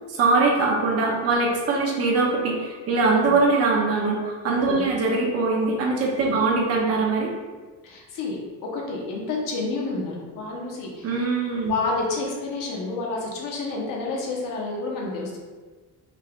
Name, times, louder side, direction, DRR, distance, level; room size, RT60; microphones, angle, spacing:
voice 1, 0.2-7.3 11.0-11.7, right 3 dB, 45° right, -1 dB, 0.9 m, -22 dB
voice 2, 7.8-11.1 11.7-15.4, left 3 dB, 65° left, -2 dB, 1.2 m, -29 dB
5.4 x 3.3 x 2.5 m, 1.4 s
cardioid pair, 170°, 35 cm